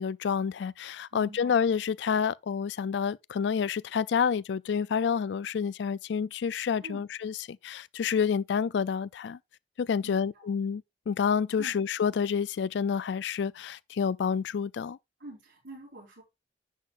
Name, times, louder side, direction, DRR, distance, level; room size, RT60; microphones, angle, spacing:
voice 1, 0.0-7.3 7.6-9.4 9.8-15.0, left 6 dB, 70° left, 0.3 m, -29 dB
voice 2, 1.1-1.6 6.8-7.1 10.0-10.5 11.6-11.8 15.2-16.2, right 2 dB, 85° right, 4.5 m, -47 dB
10.0 x 6.6 x 2.5 m
head